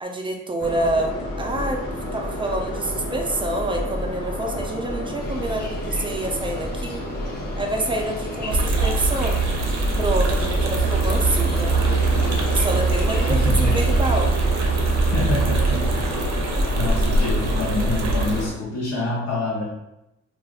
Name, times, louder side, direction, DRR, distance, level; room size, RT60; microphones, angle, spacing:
voice 1, 0.0-1.8 2.1-7.0 7.6-9.4 10.0-11.8 12.5-14.4, right 1 dB, 15° right, 1 dB, 0.5 m, -27 dB
sound 1, 0.6-18.5, equal, 80° left, 1.0 m, -29 dB
sound 2, 5.2-14.3, left 2 dB, 35° left, 0.6 m, -38 dB
sound 3, 8.5-18.4, right 3 dB, 60° right, 0.6 m, -22 dB
voice 2, 13.3-13.8 15.1-16.1 16.7-19.6, left 2 dB, 55° left, -6 dB, 0.8 m, -26 dB
3.4 x 2.4 x 2.3 m, 0.89 s
cardioid pair, 90°, 30 cm